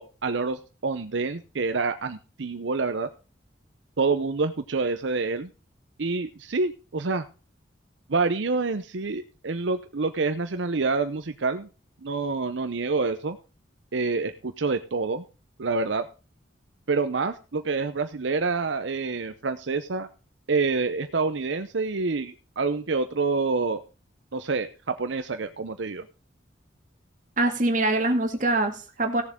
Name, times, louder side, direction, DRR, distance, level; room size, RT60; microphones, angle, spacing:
voice 1, 0.0-3.1 4.0-5.5 6.0-7.2 8.1-11.7 12.0-13.4 13.9-15.2 15.6-16.0 16.9-20.1 20.5-23.8 24.3-26.1, right 4 dB, 75° right, 9 dB, 0.7 m, -27 dB
voice 2, 27.4-29.2, right 2 dB, 40° right, 4 dB, 2.1 m, -24 dB
17.0 x 7.3 x 3.6 m, 0.34 s
head